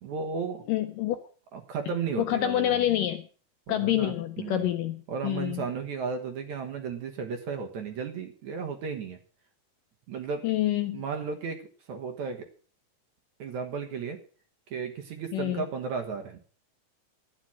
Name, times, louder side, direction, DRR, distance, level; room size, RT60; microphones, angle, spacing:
voice 1, 0.0-0.6 1.5-2.9 3.7-4.7 5.1-9.2 10.1-10.4 10.9-11.6 11.9-12.5 13.4-14.2 14.7-16.4, right 5 dB, 60° right, 5 dB, 2.2 m, -34 dB
voice 2, 0.7-1.2 2.2-3.3 3.7-5.7 10.4-11.0 15.3-15.7, left 13 dB, 75° left, 8 dB, 2.1 m, -27 dB
12.5 x 10.0 x 7.4 m, 0.42 s
omnidirectional pair, 4.6 m